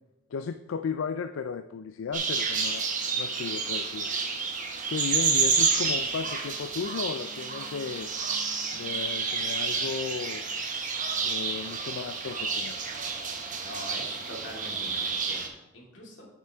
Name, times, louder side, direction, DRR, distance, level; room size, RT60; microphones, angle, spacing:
voice 1, 0.3-2.9 3.1-4.2 4.9-8.1 8.7-10.5 11.2-12.8, left 5 dB, 85° left, 10 dB, 0.4 m, -35 dB
sound 1, 2.1-15.5, right 5 dB, 40° right, 1.1 m, -30 dB
voice 2, 13.6-15.5 15.7-16.3, equal, 65° left, -1 dB, 2.4 m, -43 dB
9.4 x 7.4 x 3.5 m, 0.96 s
head